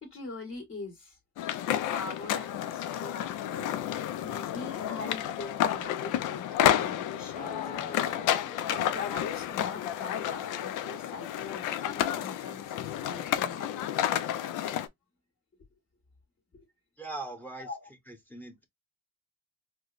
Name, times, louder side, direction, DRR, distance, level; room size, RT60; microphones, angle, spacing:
voice 1, 0.0-1.2 1.6-3.7 4.2-8.2 8.7-13.8 16.5-16.7 17.6-17.9, left 3 dB, 45° left, 1.6 m, -43 dB
sound 1, 1.4-14.9, left 11 dB, 85° left, 0.5 m, -31 dB
sound 2, 7.3-11.3, left 5 dB, 25° left, 0.4 m, -47 dB
voice 2, 17.0-17.7 18.1-18.7, right 2 dB, 5° left, 0.8 m, -40 dB
4.6 x 2.2 x 2.5 m
cardioid pair, 90°, 30 cm